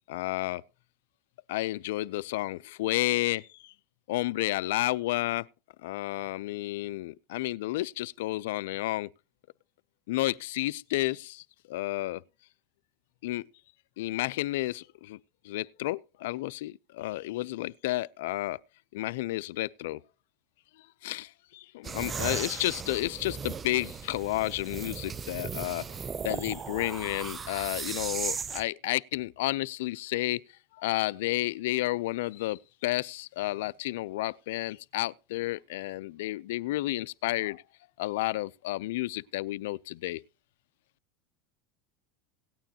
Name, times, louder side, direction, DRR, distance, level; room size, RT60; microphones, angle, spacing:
voice 1, 0.1-0.6 1.5-3.7 4.1-5.5 5.8-9.1 10.1-12.2 13.2-13.4 14.0-15.2 15.4-18.6 18.9-20.0 21.0-25.9 26.2-30.4 30.8-37.6 38.0-40.2, left 17 dB, 80° left, 0.4 m, -31 dB
sound 1, 21.8-28.6, right 6 dB, 25° right, 0.5 m, -37 dB
17.5 x 9.1 x 2.8 m
supercardioid pair, 120°, 0 cm